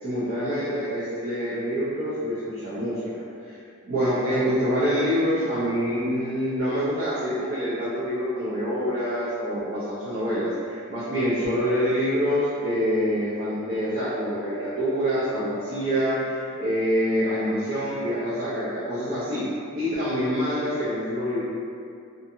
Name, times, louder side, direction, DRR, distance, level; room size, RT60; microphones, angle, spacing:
voice 1, 0.0-3.6 3.8-19.5 19.7-21.4, equal, 45° right, -12 dB, 0.5 m, -26 dB
2.6 x 2.5 x 2.5 m, 2.5 s
head